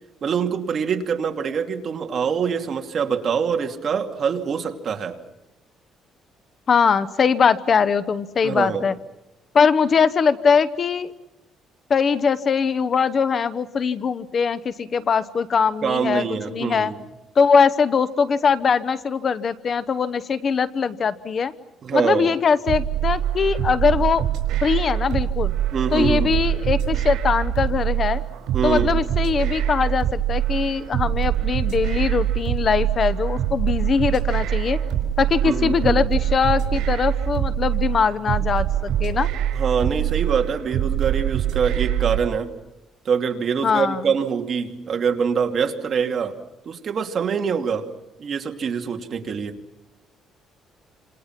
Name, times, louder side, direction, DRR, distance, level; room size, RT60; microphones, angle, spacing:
voice 1, 0.2-5.2 8.4-8.8 15.8-16.9 21.8-22.3 25.7-26.3 28.5-28.9 35.4-36.0 39.5-42.5 43.0-46.4 46.7-47.9 48.2-49.6, right 6 dB, 40° right, 5 dB, 2.6 m, -24 dB
voice 2, 6.7-8.9 9.5-11.1 11.9-16.9 17.4-21.5 21.9-24.3 24.6-25.5 25.9-28.2 28.6-34.8 35.2-39.3 43.6-44.1, left 6 dB, 35° left, 15 dB, 0.9 m, -21 dB
sound 1, 22.7-42.3, right 11 dB, 80° right, 4.9 m, -24 dB
28.5 x 27.0 x 6.0 m, 0.96 s
cardioid pair, 140°, 0 cm